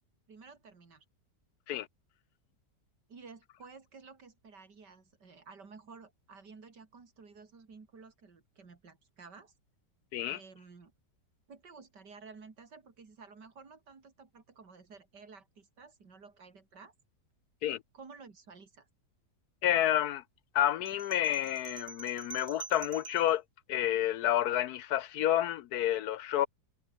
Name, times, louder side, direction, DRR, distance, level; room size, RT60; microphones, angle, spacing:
voice 1, 0.3-1.1 3.1-9.5 10.3-10.9 11.5-16.9 17.9-18.9, right 4 dB, 75° right, 3.6 m, -53 dB
voice 2, 19.6-20.2 20.5-23.4 23.7-26.5, left 12 dB, 70° left, 1.1 m, -29 dB
sound 1, 20.9-23.3, right 4 dB, 45° right, 3.0 m, -46 dB
omnidirectional pair, 1.8 m